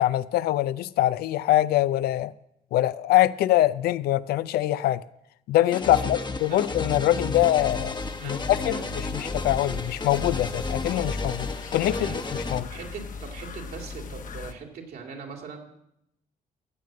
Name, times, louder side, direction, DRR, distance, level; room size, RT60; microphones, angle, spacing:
voice 1, 0.0-2.3 2.7-5.0 5.5-12.7, left 14 dB, 85° left, 16 dB, 0.5 m, -24 dB
sound 1, 5.7-12.6, left 3 dB, 30° left, 1.0 m, -32 dB
voice 2, 5.9-6.7 8.2-8.9 9.1-9.3 11.9-15.6, right 5 dB, 75° right, 1 dB, 2.8 m, -42 dB
sound 2, 6.3-14.5, left 5 dB, 55° left, 1.1 m, -41 dB
15.0 x 7.6 x 7.5 m, 0.81 s
cardioid pair, 85°, 16 cm